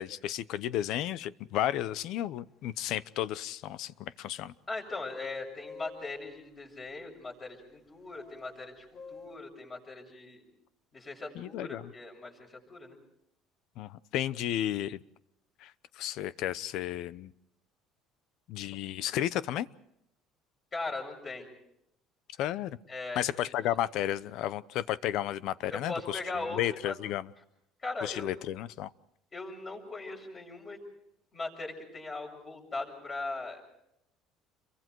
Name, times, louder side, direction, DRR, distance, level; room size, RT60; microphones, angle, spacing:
voice 1, 0.0-4.5 11.3-11.9 13.8-15.0 15.6-17.3 18.5-19.7 22.4-22.8 23.2-26.2 26.6-27.3 28.0-28.9, left 12 dB, 65° left, 18 dB, 0.8 m, -33 dB
sound 1, 2.7-3.0 3.3-4.1 4.8-9.4, left 4 dB, 40° left, 4.0 m, -51 dB
voice 2, 4.7-10.4 10.9-13.0 20.7-21.5 22.9-23.7 25.7-26.9 27.8-28.3 29.3-30.8 31.3-33.6, left 3 dB, 25° left, 1 dB, 7.3 m, -39 dB
29.5 x 23.0 x 4.7 m, 0.79 s
cardioid pair, 135°, 0 cm